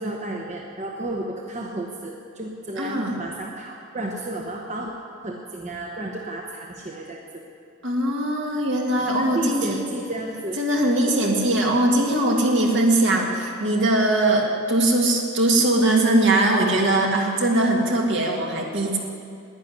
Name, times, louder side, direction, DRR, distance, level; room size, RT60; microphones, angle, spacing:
voice 1, 0.0-4.9 5.2-7.4 8.4-8.6 8.9-10.9 11.2-11.3 15.1-15.2, right 1 dB, 35° right, 0 dB, 1.0 m, -32 dB
voice 2, 2.8-3.2 7.8-9.8 10.6-19.0, right 1 dB, 65° right, 0 dB, 2.1 m, -21 dB
11.0 x 9.5 x 9.8 m, 2.4 s
head